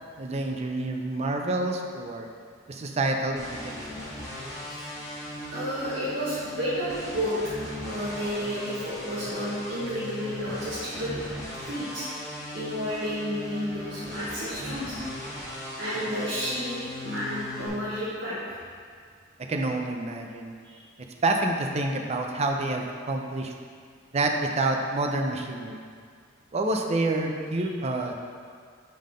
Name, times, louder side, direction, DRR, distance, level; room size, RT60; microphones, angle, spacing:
voice 1, 0.2-2.3 2.7-3.9 19.5-20.5 21.2-23.5 24.1-25.8 26.5-28.1, right 2 dB, 30° right, 3 dB, 0.4 m, -28 dB
sound 1, 3.4-17.7, left 1 dB, 15° left, 1.2 m, -38 dB
voice 2, 5.5-7.3 7.8-11.2 11.6-12.1 12.5-15.0 15.8-18.4 20.6-20.8 27.6-27.7, equal, 65° right, -11 dB, 1.2 m, -31 dB
5.6 x 3.8 x 5.0 m, 2.1 s
head